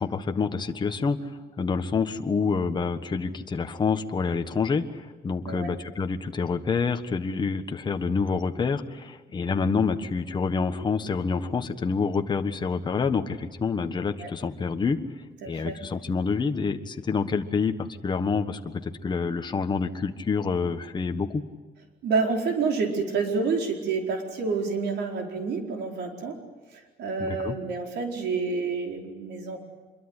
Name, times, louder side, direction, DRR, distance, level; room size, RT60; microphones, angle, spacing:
voice 1, 0.0-15.0 15.4-21.4 27.2-27.6, left 5 dB, 25° left, 6 dB, 1.3 m, -27 dB
voice 2, 15.4-15.8 22.0-26.4 26.7-29.6, right 4 dB, 85° right, 3 dB, 4.6 m, -28 dB
25.5 x 22.5 x 9.8 m, 1.3 s
cardioid pair, 160°, 17 cm